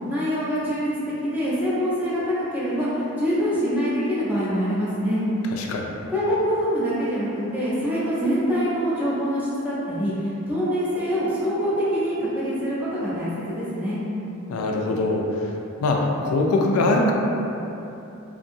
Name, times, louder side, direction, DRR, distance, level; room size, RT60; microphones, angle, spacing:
voice 1, 0.1-0.9 1.2-5.2 6.1-14.0, equal, 10° right, -10 dB, 0.6 m, -25 dB
voice 2, 5.6-5.9 14.5-15.3 15.8-17.1, left 2 dB, 75° left, 0 dB, 0.3 m, -22 dB
2.7 x 2.7 x 2.5 m, 3.0 s
head